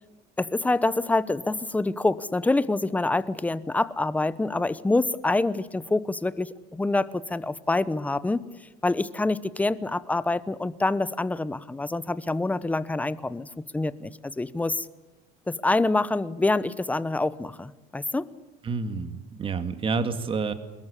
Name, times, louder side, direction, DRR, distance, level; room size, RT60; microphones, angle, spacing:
voice 1, 0.4-8.4 8.8-14.9 15.5-18.3, left 2 dB, 10° left, 16 dB, 0.9 m, -26 dB
voice 2, 18.6-20.5, right 4 dB, 30° right, 10 dB, 2.3 m, -29 dB
25.0 x 21.5 x 8.4 m, 1.1 s
cardioid pair, 135°, 18 cm